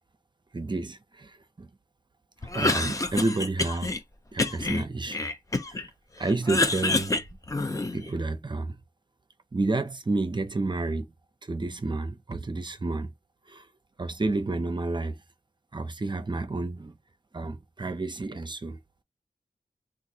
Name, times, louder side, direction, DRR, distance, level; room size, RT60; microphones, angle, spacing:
voice 1, 0.5-1.7 2.5-4.0 4.3-5.3 5.7-5.8 6.2-7.2 7.6-7.7 7.9-8.8 9.5-11.1 11.5-13.1 13.5-13.7 14.0-15.2 15.7-17.0 17.3-18.8, right 2 dB, 30° right, 0.5 m, -30 dB
Cough, 2.4-4.0 4.4-5.9 6.2-8.1, left 2 dB, 20° left, 0.5 m, -27 dB
3.6 x 2.4 x 2.7 m
wide cardioid pair, 80°, 15 cm